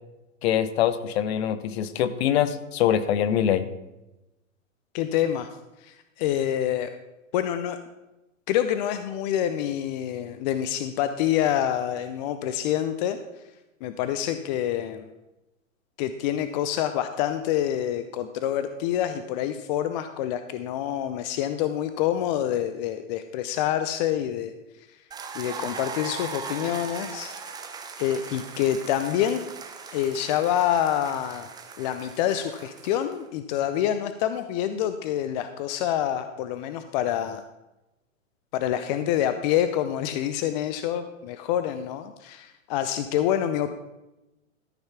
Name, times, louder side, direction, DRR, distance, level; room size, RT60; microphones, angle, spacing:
voice 1, 0.4-3.6, left 10 dB, 50° left, 13 dB, 0.9 m, -24 dB
voice 2, 4.9-5.5 5.8-6.9 7.3-7.8 8.5-13.2 13.8-15.1 16.0-24.5 25.3-27.3 28.0-29.4 29.9-37.4 38.5-43.7, left 11 dB, 35° left, 10 dB, 0.5 m, -27 dB
sound 1, 25.1-33.2, right 5 dB, 10° right, 0.7 m, -39 dB
13.0 x 5.6 x 5.8 m, 0.99 s
hypercardioid pair, 120°, 40 cm